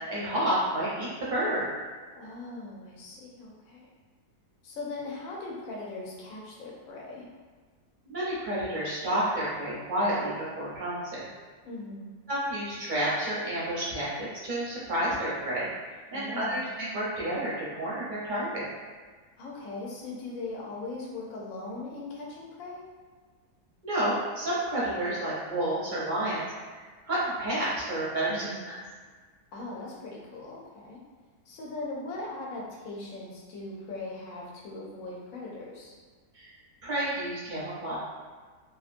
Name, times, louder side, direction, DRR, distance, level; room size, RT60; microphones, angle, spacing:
voice 1, 0.1-1.6 8.1-11.2 12.3-18.7 23.8-28.7 36.3-36.5 36.8-38.0, right 1 dB, 45° right, -8 dB, 0.6 m, -30 dB
voice 2, 2.1-3.9 4.6-7.3 11.6-12.1 16.1-16.6 19.4-22.8 28.3-28.6 29.5-31.0 31.5-35.9, left 2 dB, 65° left, -3 dB, 1.0 m, -39 dB
2.8 x 2.5 x 2.5 m, 1.5 s
omnidirectional pair, 1.7 m